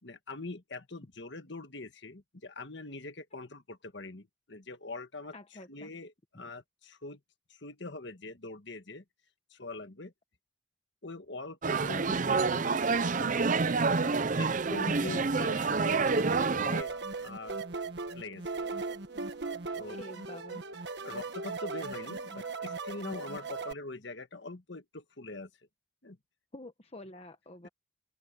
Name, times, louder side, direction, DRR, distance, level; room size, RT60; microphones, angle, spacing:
voice 1, 0.0-5.3 5.7-7.2 7.5-9.0 9.5-10.1 11.0-16.9 17.2-17.5 18.1-18.4 19.1-19.2 19.7-20.0 21.0-25.5 26.0-26.2, left 2 dB, 60° left, 1.6 m, -43 dB
voice 2, 5.3-5.9 20.0-20.6 26.5-27.7, left 1 dB, 30° left, 1.1 m, -47 dB
sound 1, 11.6-16.8, right 4 dB, 40° right, 0.6 m, -28 dB
sound 2, 16.1-23.7, right 3 dB, 55° right, 1.4 m, -38 dB
head